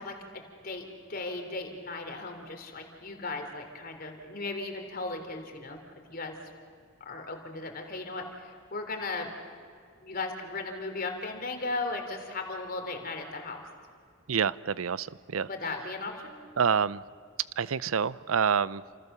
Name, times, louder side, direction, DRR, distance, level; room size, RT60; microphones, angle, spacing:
voice 1, 0.0-5.8 6.1-6.4 7.1-9.3 10.0-13.6 15.4-16.4, left 3 dB, 45° left, 4 dB, 3.5 m, -36 dB
voice 2, 14.3-15.5 16.6-17.0 17.6-18.8, right 6 dB, 90° right, 18 dB, 0.6 m, -27 dB
29.0 x 27.0 x 6.9 m, 2.2 s
head